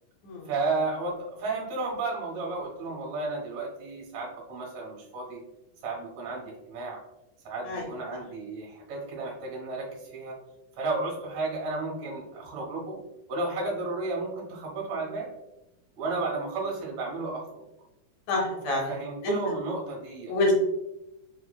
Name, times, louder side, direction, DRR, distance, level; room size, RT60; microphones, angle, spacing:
voice 1, 0.5-5.4 5.8-7.0 7.4-10.4 10.8-13.0 13.3-15.3 16.0-17.6 18.6-20.3, right 3 dB, 60° right, -3 dB, 2.2 m, -33 dB
voice 2, 18.3-18.9 19.2-19.3 20.3-20.5, left 2 dB, 75° left, -1 dB, 2.1 m, -27 dB
7.0 x 2.9 x 2.2 m, 0.93 s
omnidirectional pair, 3.7 m